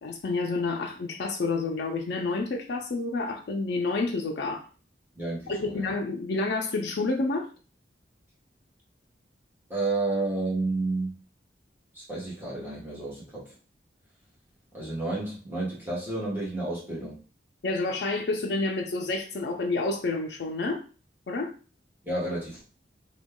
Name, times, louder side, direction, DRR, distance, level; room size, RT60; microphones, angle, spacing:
voice 1, 0.0-4.6 5.5-7.5 17.6-20.8 21.3-21.5, left 3 dB, 65° left, 0.4 m, -29 dB
voice 2, 5.2-5.9 9.7-11.1 11.9-13.5 14.7-17.2 22.0-22.6, right 2 dB, 10° right, 1.3 m, -31 dB
3.0 x 2.3 x 3.5 m
head